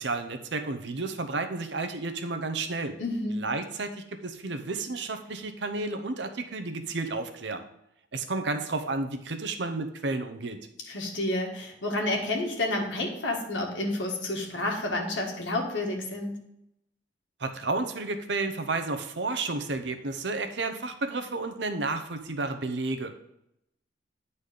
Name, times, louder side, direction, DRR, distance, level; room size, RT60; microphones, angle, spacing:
voice 1, 0.0-2.9 3.3-7.7 8.1-10.6 17.4-23.1, right 3 dB, 70° right, 7 dB, 0.8 m, -31 dB
voice 2, 3.0-3.4 10.9-16.4, left 2 dB, 75° left, 0 dB, 1.7 m, -30 dB
9.9 x 4.2 x 5.1 m, 0.82 s
head